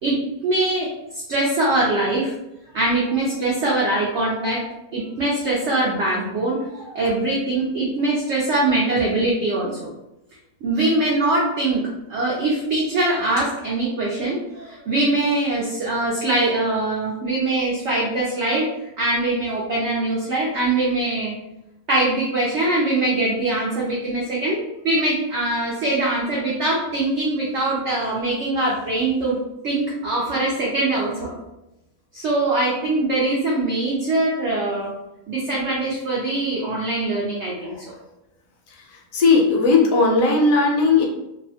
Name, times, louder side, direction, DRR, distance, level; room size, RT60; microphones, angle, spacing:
voice 1, 0.4-0.9 1.1-2.3 2.7-4.6 4.9-9.9 10.6-11.8 12.1-18.7 19.0-21.4 21.9-29.4 29.6-31.3 32.1-34.9 35.3-37.7, right 2 dB, 65° right, -4 dB, 0.7 m, -22 dB
voice 2, 39.1-41.1, left 3 dB, 70° left, -1 dB, 0.9 m, -17 dB
2.6 x 2.1 x 2.7 m, 0.91 s
omnidirectional pair, 1.7 m